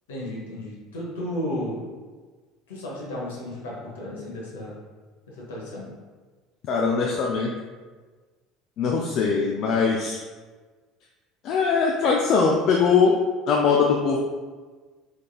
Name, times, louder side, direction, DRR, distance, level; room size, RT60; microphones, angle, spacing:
voice 1, 0.1-1.8 2.7-4.7 5.3-5.8, left 1 dB, 70° left, -4 dB, 1.1 m, -33 dB
voice 2, 6.7-7.5 8.8-10.2 11.4-13.2 13.5-14.2, left 5 dB, 45° left, -1 dB, 0.4 m, -21 dB
4.9 x 3.3 x 2.4 m, 1.4 s
figure-of-eight pair, 65°, 0 cm